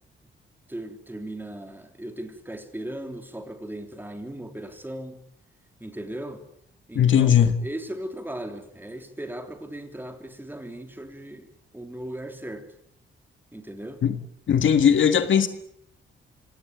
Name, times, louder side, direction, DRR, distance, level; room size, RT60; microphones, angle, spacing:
voice 1, 0.7-5.2 5.8-6.4 6.9-12.7 13.5-14.0, right 1 dB, 10° right, 6 dB, 3.5 m, -37 dB
voice 2, 7.0-7.6 14.0-14.2 14.5-15.5, left 8 dB, 65° left, 9 dB, 1.8 m, -18 dB
25.5 x 18.0 x 9.2 m, 0.75 s
cardioid pair, 105°, 21 cm